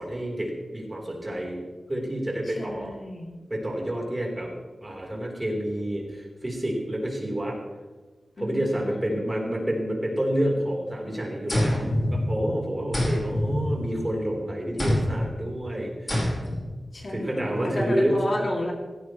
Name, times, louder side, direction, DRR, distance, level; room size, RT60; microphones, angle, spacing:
voice 1, 0.0-1.6 1.9-3.0 3.5-4.5 4.8-7.6 8.4-16.3 17.1-18.2, right 1 dB, 20° right, -1 dB, 4.0 m, -29 dB
voice 2, 2.5-3.4 8.4-9.2 16.9-18.7, left 1 dB, 45° left, 0 dB, 2.7 m, -32 dB
sound 1, 11.5-12.5 12.9-14.2 14.8-15.3 16.1-16.7, left 1 dB, 25° left, 4.8 m, -26 dB
17.5 x 16.5 x 3.2 m, 1.2 s
wide cardioid pair, 125°, 0 cm